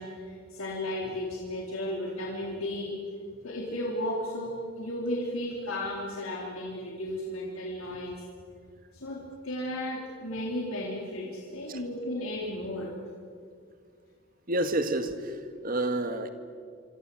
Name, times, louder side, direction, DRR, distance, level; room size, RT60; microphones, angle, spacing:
voice 1, 0.0-3.0 3.4-8.2 8.9-12.9, left 1 dB, 85° left, -2 dB, 3.7 m, -34 dB
voice 2, 14.5-16.3, right 1 dB, 45° right, 9 dB, 2.0 m, -29 dB
26.5 x 25.5 x 7.8 m, 2.2 s
head